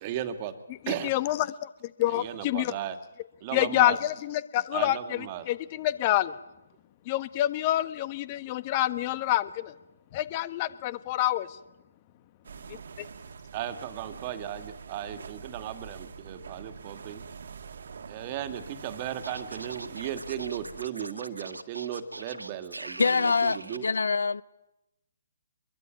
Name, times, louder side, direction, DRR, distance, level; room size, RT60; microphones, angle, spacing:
voice 1, 0.0-0.5 0.9-1.1 2.1-3.0 3.4-4.0 4.7-5.4 13.5-17.2 18.1-23.9, right 10 dB, 30° right, 2.3 m, -36 dB
voice 2, 0.7-2.7 3.5-6.3 7.0-9.7 10.1-11.6 12.7-13.0, left 14 dB, 30° left, 1.3 m, -28 dB
sound 1, 12.4-20.9, right 6 dB, 60° right, 1.9 m, -45 dB
Scratching (performance technique), 19.2-23.8, right 2 dB, 85° right, 1.8 m, -41 dB
voice 3, 23.0-24.4, left 4 dB, 70° left, 0.9 m, -25 dB
24.5 x 22.5 x 9.4 m
figure-of-eight pair, 140°, 0 cm